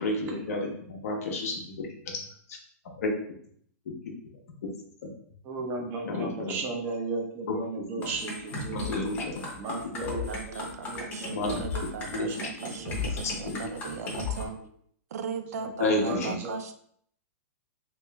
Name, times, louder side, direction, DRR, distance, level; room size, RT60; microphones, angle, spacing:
voice 1, 0.0-2.2 3.0-3.1 6.0-6.5 7.8-7.9 8.7-9.4 11.3-11.6 12.1-12.3 13.2-13.5 15.8-16.4, left 2 dB, 70° left, 0 dB, 0.9 m, -30 dB
voice 2, 5.4-9.0 9.6-11.7 12.3-12.9 13.5-13.6 14.1-14.2 14.6-14.7 15.6-15.7 16.0-16.6, right 3 dB, 25° right, 1 dB, 0.5 m, -36 dB
sound 1, 8.0-14.4, left 3 dB, 20° left, 0.8 m, -35 dB
voice 3, 10.0-14.6 15.1-16.7, right 6 dB, 85° right, 8 dB, 0.5 m, -38 dB
3.0 x 3.0 x 3.3 m, 0.64 s
supercardioid pair, 165°, 8 cm